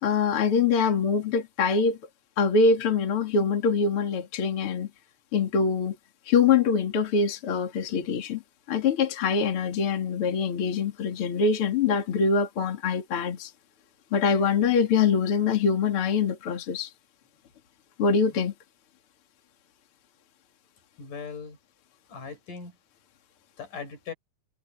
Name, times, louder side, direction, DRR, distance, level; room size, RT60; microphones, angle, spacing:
voice 1, 0.0-2.0 2.4-4.9 5.3-6.0 6.3-8.4 8.7-13.5 14.1-16.9 18.0-18.5, left 5 dB, 45° left, 3.1 m, -24 dB
voice 2, 21.0-21.6 22.1-22.7 23.6-24.1, left 5 dB, 75° left, 6.6 m, -39 dB
omnidirectional pair, 3.7 m